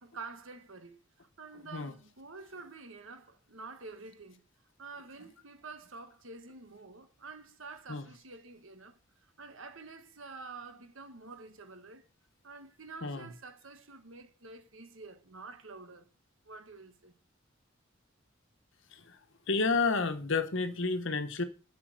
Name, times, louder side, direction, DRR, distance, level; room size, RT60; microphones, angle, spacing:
voice 1, 0.0-4.4 4.8-9.0 9.4-12.1 12.4-16.1 16.4-17.1, right 4 dB, 75° right, 1.4 m, -48 dB
voice 2, 19.5-21.4, left 4 dB, 70° left, 1.2 m, -30 dB
7.7 x 6.2 x 6.5 m
head